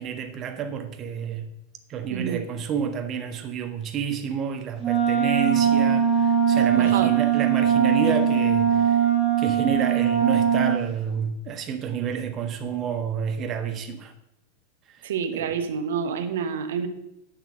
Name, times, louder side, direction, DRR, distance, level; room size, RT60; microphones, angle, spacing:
voice 1, 0.0-1.5 1.9-9.1 9.4-14.1 15.0-15.6, right 7 dB, 30° right, 1.4 m, -29 dB
voice 2, 2.1-2.4 6.8-7.1 15.0-16.9, right 7 dB, 60° right, 1.3 m, -28 dB
Wind instrument woodwind instrument, 4.8-10.8, right 8 dB, 15° right, 3.8 m, -21 dB
10.5 x 5.9 x 7.5 m
figure-of-eight pair, 90°, 0 cm